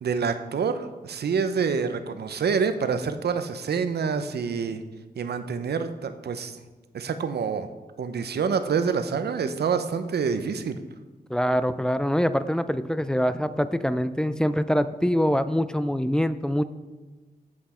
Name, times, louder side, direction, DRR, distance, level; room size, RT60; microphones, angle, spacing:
voice 1, 0.0-4.8 5.2-6.6 6.9-7.7 8.0-10.8, right 6 dB, 80° right, 10 dB, 0.7 m, -27 dB
voice 2, 11.3-16.6, equal, 5° left, 12 dB, 0.4 m, -24 dB
8.5 x 7.6 x 4.3 m, 1.3 s
wide cardioid pair, 80°, 17 cm